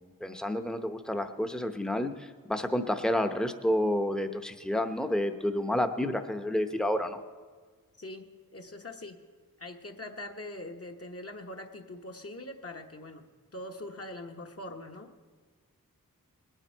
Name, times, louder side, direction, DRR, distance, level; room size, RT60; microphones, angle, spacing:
voice 1, 0.0-7.2, left 1 dB, ahead, 7 dB, 0.8 m, -30 dB
voice 2, 8.0-9.2 9.6-13.2 13.5-15.1, left 1 dB, 40° left, 3 dB, 1.1 m, -42 dB
20.0 x 9.0 x 4.5 m, 1.5 s
wide cardioid pair, 70°, 35 cm